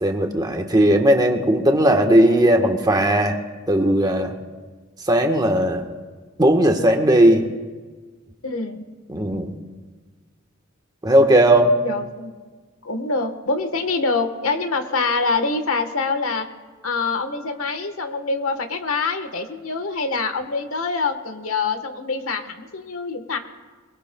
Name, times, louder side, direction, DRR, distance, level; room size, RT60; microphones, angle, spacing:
voice 1, 0.0-3.4 3.7-4.3 5.1-5.8 6.4-7.5 9.1-9.5 11.0-11.7, right 1 dB, 20° right, 4 dB, 1.2 m, -17 dB
voice 2, 8.4-8.8 11.8-12.3 12.8-16.5 16.8-23.4, left 4 dB, 80° left, 7 dB, 1.3 m, -25 dB
23.0 x 22.5 x 2.3 m, 1.4 s
head